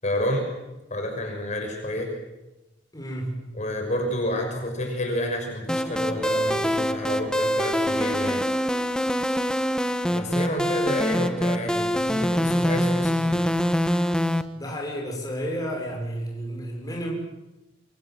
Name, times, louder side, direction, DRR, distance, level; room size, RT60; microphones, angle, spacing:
voice 1, 0.0-0.5 0.9-2.1 3.5-8.4 10.1-13.5, left 1 dB, 40° left, 3 dB, 6.3 m, -29 dB
voice 2, 2.9-3.6 14.5-17.1, equal, 20° left, 0 dB, 6.5 m, -32 dB
sound 1, 5.7-14.4, equal, 5° left, 1.4 m, -24 dB
28.0 x 26.0 x 7.8 m, 1.0 s
head